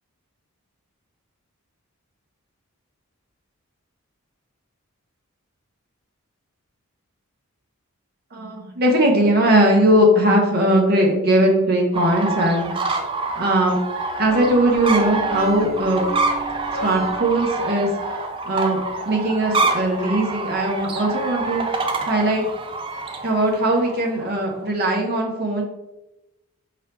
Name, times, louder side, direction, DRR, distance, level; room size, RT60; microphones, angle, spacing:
voice 1, 8.3-12.7 13.4-13.8 14.2-16.1 16.8-17.9 18.5-18.8 19.0-21.6 22.1-22.5 23.2-25.6, right 1 dB, 45° right, 0 dB, 0.9 m, -19 dB
sound 1, 11.9-24.7, right 3 dB, 25° right, 0.3 m, -27 dB
sound 2, 14.3-17.4, right 2 dB, ahead, 1.4 m, -33 dB
4.5 x 2.9 x 3.3 m, 0.99 s
head